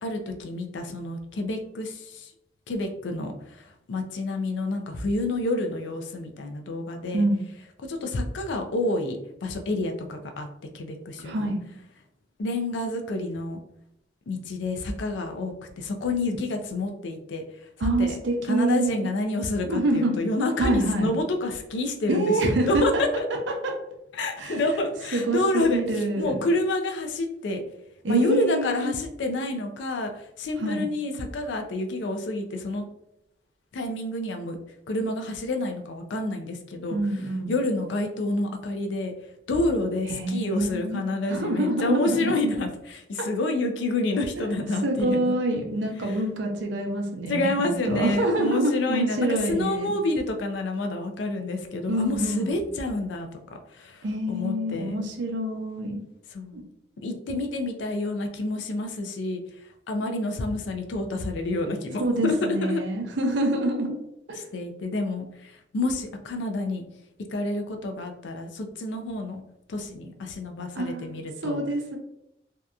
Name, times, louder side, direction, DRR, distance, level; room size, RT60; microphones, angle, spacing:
voice 1, 0.0-2.3 2.7-7.3 7.9-10.5 10.7-11.5 12.4-13.6 14.3-17.4 17.8-18.2 18.4-23.2 24.1-27.6 28.1-32.9 33.7-34.6 34.9-39.1 39.5-45.3 46.0-46.2 47.3-53.3 53.7-55.0 56.3-56.6 57.0-59.4 59.9-62.8 64.5-66.8 67.3-69.4 69.7-71.6, left 2 dB, 80° left, 5 dB, 0.4 m, -28 dB
voice 2, 11.2-11.6 17.8-18.9 19.6-20.1 20.6-21.1 22.1-23.0 23.6-23.8 24.4-24.6 25.1-26.4 28.0-28.9 30.6-30.9 36.9-37.5 40.1-41.0 41.3-42.4 43.2-43.3 44.8-49.9 51.8-52.5 54.0-56.0 56.5-56.6 62.0-64.0 64.3-64.4 70.7-72.0, right 1 dB, 80° right, 2 dB, 0.5 m, -26 dB
2.7 x 2.2 x 2.3 m, 0.80 s
head